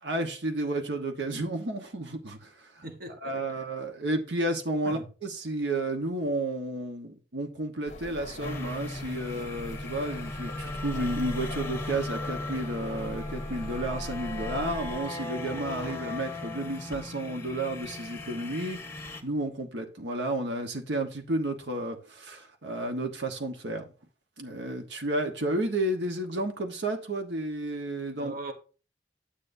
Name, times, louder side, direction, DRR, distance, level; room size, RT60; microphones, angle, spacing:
voice 1, 0.0-2.8 3.2-18.8 19.2-23.9 24.4-28.4, right 1 dB, 85° right, 1.2 m, -32 dB
voice 2, 2.8-3.6 4.8-5.1 28.2-28.5, right 2 dB, 55° right, 1.2 m, -40 dB
sound 1, 7.9-15.0, left 1 dB, 45° left, 0.7 m, -40 dB
sound 2, 8.4-19.2, left 2 dB, 15° left, 1.3 m, -38 dB
10.0 x 8.2 x 2.7 m
head